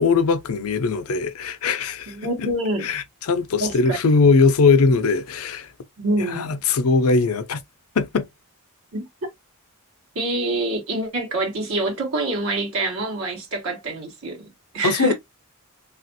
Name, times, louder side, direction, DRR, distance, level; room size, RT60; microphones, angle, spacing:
voice 1, 0.0-2.2 2.4-2.5 2.8-5.7 6.3-7.6 8.0-8.3 14.8-15.1, left 4 dB, 75° left, 0.5 m, -20 dB
voice 2, 2.1-2.9 3.6-4.0 6.0-6.5 8.9-9.1 10.1-15.1, right 2 dB, 70° right, 1.0 m, -26 dB
3.3 x 2.4 x 2.6 m
head